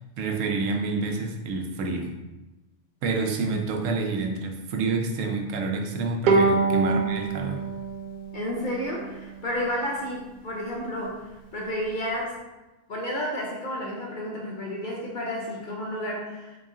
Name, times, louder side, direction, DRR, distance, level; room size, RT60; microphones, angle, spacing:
voice 1, 0.0-2.1 3.0-7.6, right 3 dB, 80° right, 2 dB, 1.0 m, -28 dB
Bowed string instrument, 6.3-9.6, right 4 dB, 60° right, 0.5 m, -25 dB
voice 2, 8.3-12.4 12.9-16.6, equal, 55° left, -3 dB, 0.6 m, -31 dB
4.0 x 2.3 x 3.6 m, 1.1 s
omnidirectional pair, 1.3 m